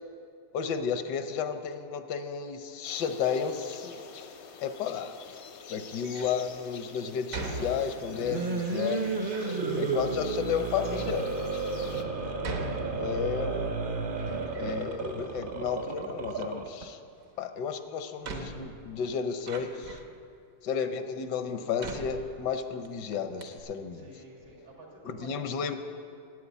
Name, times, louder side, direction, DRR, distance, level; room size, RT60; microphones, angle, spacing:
voice 1, 0.5-4.0 4.6-5.4 5.7-9.0 9.8-11.3 12.3-13.9 14.6-17.0 17.4-20.0 20.6-24.0 25.0-25.8, left 7 dB, 80° left, 8 dB, 1.3 m, -33 dB
sound 1, 2.8-12.0, left 6 dB, 60° left, 0.7 m, -47 dB
Door, 5.9-6.4 7.3-8.3 9.0-9.6 10.4-10.5 11.1-11.2 12.4-13.6 13.9-15.0 15.3-16.1 17.4-17.5 18.2-20.2 20.9-21.0 21.8-22.9 23.1-23.2 23.4-23.6, right 3 dB, 65° right, 1.4 m, -41 dB
sound 2, 8.1-16.8, right 4 dB, 45° right, 0.7 m, -32 dB
voice 2, 8.7-10.3 11.6-12.0 23.9-25.8, right 2 dB, 80° right, -2 dB, 3.0 m, -52 dB
9.8 x 8.6 x 8.2 m, 2.4 s
omnidirectional pair, 1.8 m